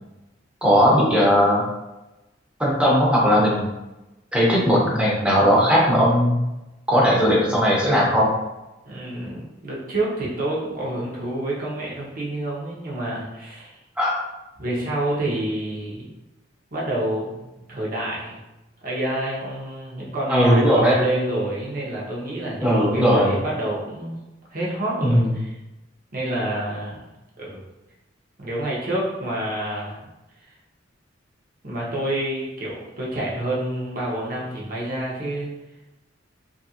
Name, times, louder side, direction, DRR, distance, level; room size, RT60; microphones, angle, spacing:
voice 1, 0.6-1.6 2.6-3.7 4.3-6.4 6.9-8.3 14.0-14.1 20.3-21.0 22.6-23.3 25.0-25.3, equal, 5° right, -5 dB, 0.7 m, -18 dB
voice 2, 8.8-13.7 14.6-16.1 16.7-17.3 17.7-18.4 18.8-24.2 24.5-25.5 26.1-27.1 27.4-27.6 28.4-30.0 31.6-35.5, right 1 dB, 45° right, -4 dB, 0.9 m, -28 dB
2.8 x 2.6 x 2.8 m, 1.0 s
head